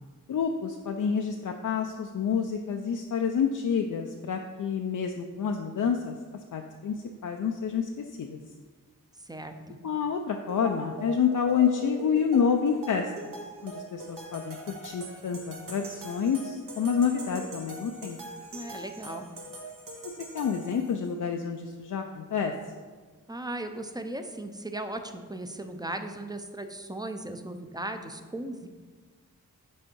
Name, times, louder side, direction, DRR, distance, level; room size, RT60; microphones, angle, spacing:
voice 1, 0.3-6.1 6.5-8.4 9.8-13.1 13.6-18.2 20.0-22.5, left 7 dB, 65° left, 4 dB, 0.5 m, -28 dB
voice 2, 9.2-9.8 18.5-19.3 23.3-28.7, right 1 dB, 10° right, 7 dB, 0.6 m, -37 dB
sound 1, 10.5-21.1, right 2 dB, 75° right, 1.2 m, -42 dB
6.3 x 4.4 x 4.5 m, 1.5 s
cardioid pair, 55°, 34 cm